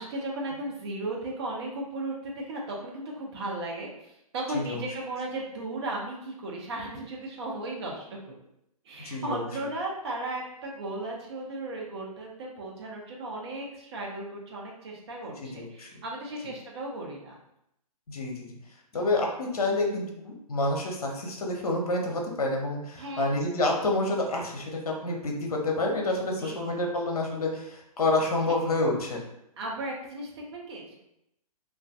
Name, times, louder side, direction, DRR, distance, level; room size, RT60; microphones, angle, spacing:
voice 1, 0.0-8.4 8.8-17.4 23.0-23.3 26.4-26.9 28.4-28.5 29.6-30.9, right 2 dB, 45° right, -2 dB, 0.7 m, -36 dB
voice 2, 9.0-9.5 15.4-16.0 18.1-18.5 18.9-29.2, left 2 dB, 70° left, 1 dB, 0.7 m, -28 dB
2.5 x 2.3 x 2.3 m, 0.79 s
figure-of-eight pair, 125°, 20 cm